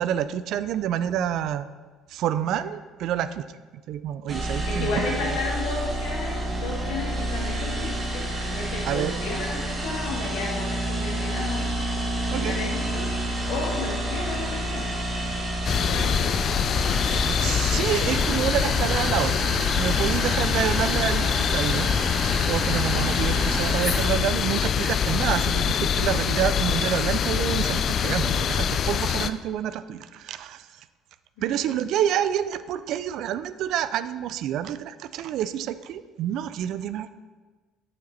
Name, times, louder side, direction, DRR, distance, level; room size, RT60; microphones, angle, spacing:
voice 1, 0.0-1.8 2.1-3.6 3.9-5.2 8.9-9.1 12.3-12.6 17.2-19.4 19.7-21.9 22.5-30.9 31.4-37.1, right 10 dB, 65° right, 14 dB, 0.3 m, -28 dB
sound 1, 4.3-24.1, right 1 dB, 25° right, 1.3 m, -29 dB
voice 2, 4.7-11.7 12.3-13.2 13.5-15.0 15.8-16.5 23.0-23.4 31.4-31.7, left 3 dB, 75° left, -3 dB, 2.0 m, -33 dB
sound 2, 15.6-29.3, left 8 dB, 50° left, 0.3 m, -24 dB
9.3 x 4.3 x 4.0 m, 1.4 s
hypercardioid pair, 65°, 0 cm